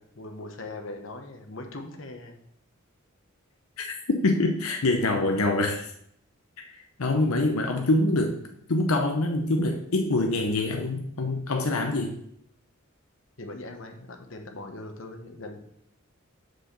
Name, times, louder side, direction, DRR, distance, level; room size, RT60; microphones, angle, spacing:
voice 1, 0.0-2.4 13.4-15.6, left 2 dB, 65° left, 4 dB, 1.1 m, -40 dB
voice 2, 3.8-5.9 6.7-8.4 8.7-12.2, left 2 dB, 90° left, 4 dB, 0.7 m, -25 dB
6.3 x 4.9 x 6.7 m, 0.73 s
head